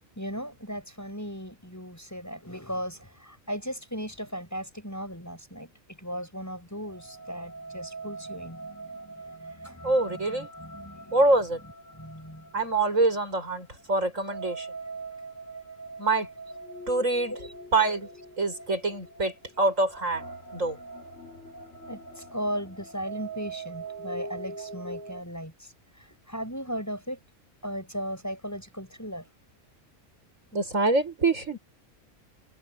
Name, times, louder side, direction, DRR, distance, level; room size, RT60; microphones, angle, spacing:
voice 1, 0.2-5.7 6.0-11.2 11.9-12.5 17.3-17.4 21.9-25.7 26.0-27.2 27.6-29.2, equal, 10° left, 6.7 m, -37 dB
sound 1, 6.8-25.2, right 3 dB, 50° left, 6.0 m, -42 dB
voice 2, 9.8-10.5 11.1-11.6 12.5-14.7 16.0-16.3 16.9-17.3 17.7-18.1 18.4-20.2 20.5-20.8 30.5-31.6, right 2 dB, 60° right, 7.6 m, -25 dB
omnidirectional pair, 1.5 m